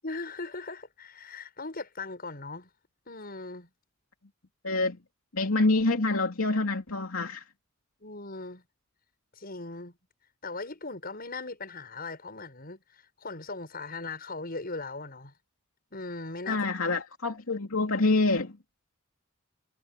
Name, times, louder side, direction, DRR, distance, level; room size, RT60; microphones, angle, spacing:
voice 1, 0.0-2.7 3.1-3.7 8.0-8.6 9.4-10.0 10.4-15.3 15.9-16.7, left 3 dB, 45° left, 7.1 m, -39 dB
voice 2, 4.6-5.0 5.3-7.4 16.5-18.6, left 2 dB, 85° left, 2.8 m, -26 dB
head